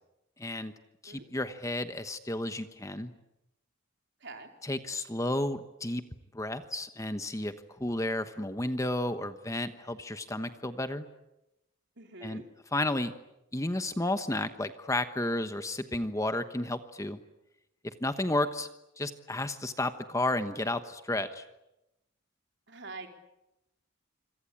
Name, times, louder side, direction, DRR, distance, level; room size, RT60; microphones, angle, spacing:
voice 1, 0.4-0.7 1.0-3.1 4.6-6.0 6.3-11.1 12.2-12.4 12.7-13.1 13.5-17.2 18.0-18.7 19.0-21.4, left 1 dB, 15° left, 9 dB, 1.1 m, -32 dB
voice 2, 4.2-4.5 12.0-12.5 22.7-23.1, right 3 dB, 55° right, 4 dB, 4.3 m, -44 dB
26.5 x 25.5 x 8.7 m, 0.91 s
head